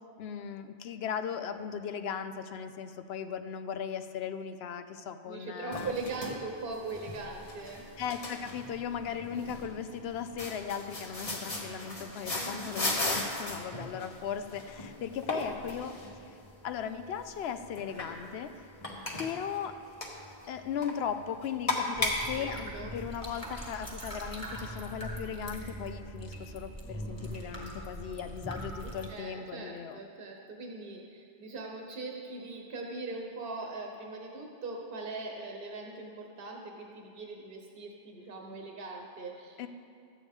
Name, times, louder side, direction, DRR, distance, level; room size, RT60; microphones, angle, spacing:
voice 1, 0.2-5.9 8.0-15.9 16.3-16.4 16.6-18.6 19.2-19.8 20.5-30.0 39.6-39.7, left 7 dB, 75° left, 10 dB, 0.8 m, -37 dB
voice 2, 5.2-7.8 12.4-12.7 22.0-22.1 22.3-22.9 28.8-39.7, right 3 dB, 65° right, 0 dB, 1.1 m, -41 dB
sound 1, 5.7-23.4, left 2 dB, 35° left, 1.2 m, -38 dB
sound 2, 21.9-29.1, right 1 dB, 15° left, 1.8 m, -41 dB
13.0 x 8.5 x 3.6 m, 2.4 s
omnidirectional pair, 1.1 m